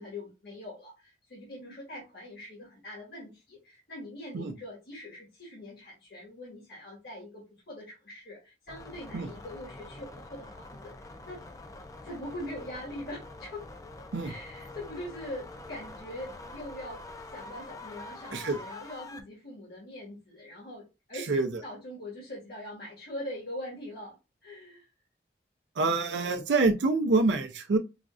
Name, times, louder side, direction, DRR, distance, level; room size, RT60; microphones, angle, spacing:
voice 1, 0.0-11.4 12.0-13.7 14.2-17.0 17.3-24.2 24.4-24.9, left 1 dB, 60° left, 1.5 m, -42 dB
sound 1, 8.7-19.2, left 2 dB, 20° left, 0.3 m, -45 dB
voice 2, 21.3-21.6 25.8-27.8, right 3 dB, 80° right, 0.4 m, -26 dB
5.0 x 2.3 x 2.4 m
head